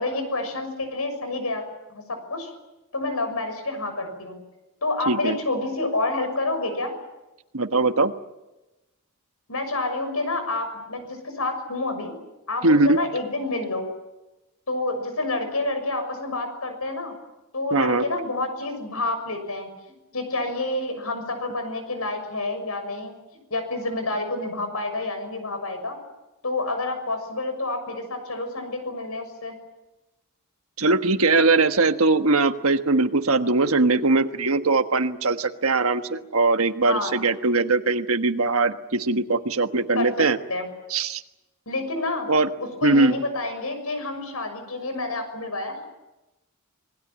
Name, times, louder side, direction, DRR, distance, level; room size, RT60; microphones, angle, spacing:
voice 1, 0.0-1.6 1.9-2.5 2.9-4.4 4.8-6.9 9.5-12.1 12.5-13.9 14.7-17.1 17.5-19.7 20.1-23.2 23.5-26.0 26.4-29.6 36.9-37.1 39.9-40.2 40.5-40.7 41.7-42.3 42.6-45.8, left 2 dB, 85° left, 8 dB, 6.7 m, -28 dB
voice 2, 5.1-5.4 7.5-8.1 12.6-13.0 17.7-18.0 30.8-40.4 40.9-41.2 42.3-42.5 42.8-43.1, right 3 dB, 75° right, 8 dB, 1.4 m, -21 dB
27.0 x 20.0 x 8.8 m, 1.0 s
head